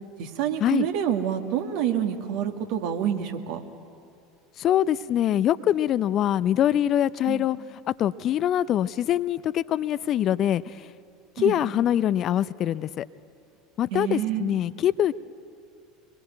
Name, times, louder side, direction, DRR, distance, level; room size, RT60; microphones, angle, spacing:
voice 1, 0.2-3.6 7.3-7.5 11.4-11.6 13.9-14.4, right 9 dB, 60° right, 5 dB, 1.9 m, -27 dB
voice 2, 4.6-7.6 7.9-10.9 11.4-13.0 13.8-15.1, left 11 dB, 40° left, 16 dB, 0.5 m, -24 dB
24.0 x 22.0 x 9.3 m, 2.5 s
figure-of-eight pair, 70°, 0 cm